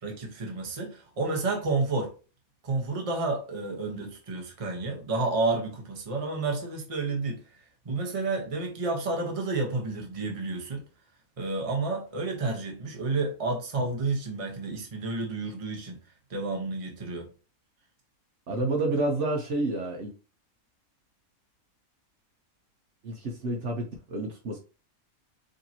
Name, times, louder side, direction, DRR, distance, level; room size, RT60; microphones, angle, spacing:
voice 1, 0.0-2.1 2.6-7.4 7.8-10.8 11.4-16.0 16.3-17.3, right 3 dB, 25° right, 0.9 m, -30 dB
voice 2, 18.5-20.1 23.0-24.6, right 2 dB, 60° right, 1.1 m, -29 dB
5.1 x 2.8 x 2.8 m
omnidirectional pair, 1.5 m